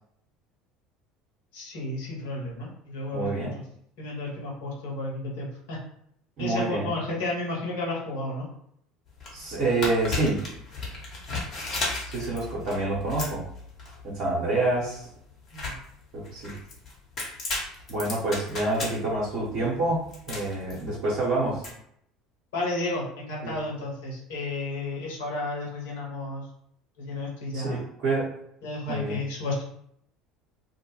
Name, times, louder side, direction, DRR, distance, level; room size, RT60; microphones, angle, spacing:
voice 1, 1.5-3.6 4.0-5.8 6.4-8.5 15.5-15.7 22.5-26.4 27.0-27.8 28.6-29.6, left 2 dB, 65° left, -3 dB, 0.9 m, -32 dB
voice 2, 3.1-3.5 6.4-6.9 9.3-10.4 12.1-13.4 14.0-15.1 16.1-16.6 17.9-20.0 20.3-21.6 23.4-23.6 27.5-28.3 28.9-29.2, right 2 dB, 55° right, -7 dB, 1.0 m, -27 dB
sound 1, 9.1-21.7, left 2 dB, 40° left, 1.0 m, -36 dB
2.3 x 2.1 x 3.0 m, 0.70 s
figure-of-eight pair, 65°, 0 cm